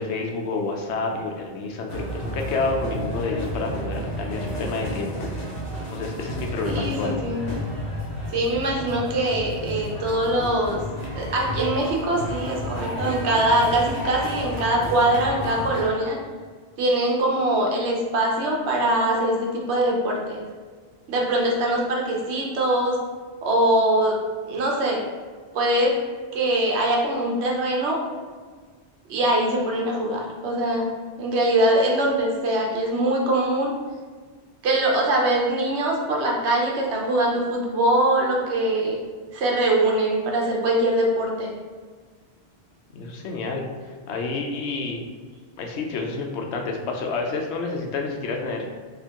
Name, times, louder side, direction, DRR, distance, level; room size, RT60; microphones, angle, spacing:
voice 1, 0.0-5.3 5.9-7.2 42.9-43.7 44.1-45.0 45.6-48.8, left 3 dB, 85° left, 2 dB, 0.9 m, -29 dB
sound 1, 1.9-15.9, equal, 60° left, 1.2 m, -32 dB
voice 2, 6.6-7.4 8.3-10.8 11.1-16.2 16.8-20.4 21.1-23.0 23.4-24.2 24.5-25.0 25.5-26.0 26.3-28.0 29.1-30.9 31.2-33.7 34.6-39.0 39.3-41.5, right 1 dB, 85° right, -1 dB, 1.1 m, -22 dB
4.2 x 2.9 x 2.9 m, 1.5 s
omnidirectional pair, 1.1 m